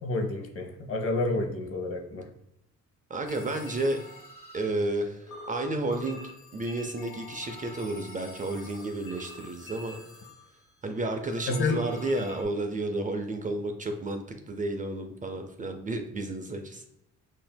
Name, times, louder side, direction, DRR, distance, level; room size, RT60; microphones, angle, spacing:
voice 1, 0.0-2.3 11.5-11.8, left 2 dB, 45° left, 4 dB, 0.8 m, -29 dB
voice 2, 3.1-4.0 4.5-6.2 6.5-10.0 10.8-16.9, right 2 dB, 25° right, 5 dB, 0.4 m, -31 dB
sound 1, 3.3-5.0 5.3-10.9 11.3-12.4, left 2 dB, 90° left, 1.1 m, -46 dB
5.7 x 2.6 x 2.2 m, 0.82 s
cardioid pair, 90°, 30 cm